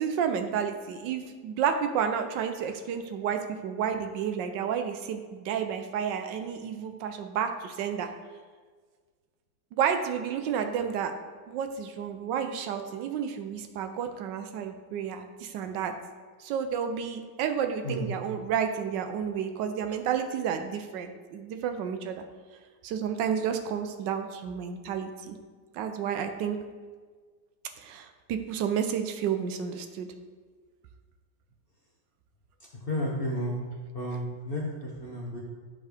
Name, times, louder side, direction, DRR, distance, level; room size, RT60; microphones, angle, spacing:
voice 1, 0.0-8.1 9.7-11.1 11.5-15.9 16.4-22.2 22.8-25.4 25.7-26.6 27.8-30.1, right 7 dB, 75° right, 6 dB, 1.2 m, -31 dB
voice 2, 32.9-33.5 33.9-35.4, left 1 dB, 50° left, -4 dB, 0.7 m, -32 dB
9.9 x 3.7 x 3.4 m, 1.5 s
omnidirectional pair, 2.0 m